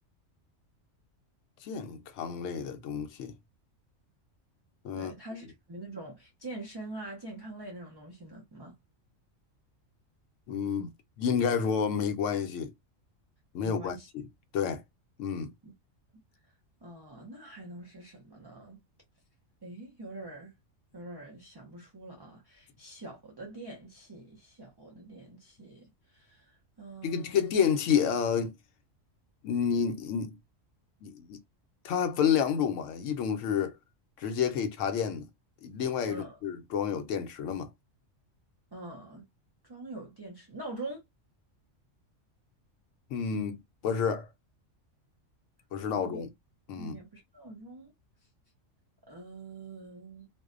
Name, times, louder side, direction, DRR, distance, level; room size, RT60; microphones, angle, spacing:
voice 1, 1.6-3.3 4.8-5.1 10.5-10.9 11.2-12.7 13.5-14.3 14.5-14.8 15.2-15.5 27.0-28.5 29.4-30.4 31.0-31.4 31.8-33.7 34.2-35.3 35.6-37.7 43.1-44.3 45.7-46.3 46.7-47.0, left 7 dB, 75° left, 0.9 m, -29 dB
voice 2, 4.9-8.8 13.6-14.1 15.6-15.7 16.8-18.8 19.6-20.5 20.9-27.5 36.1-36.4 38.7-39.3 39.6-41.0 45.9-46.2 46.8-47.9 49.1-50.3, right 2 dB, 40° right, 0.3 m, -44 dB
2.6 x 2.1 x 2.4 m
omnidirectional pair, 1.3 m